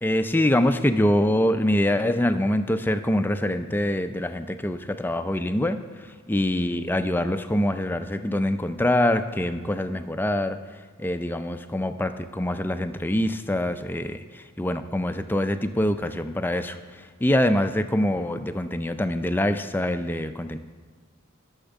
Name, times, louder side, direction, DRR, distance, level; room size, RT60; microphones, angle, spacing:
voice 1, 0.0-20.6, left 1 dB, 10° left, 9 dB, 0.4 m, -25 dB
10.0 x 6.4 x 7.0 m, 1.5 s
head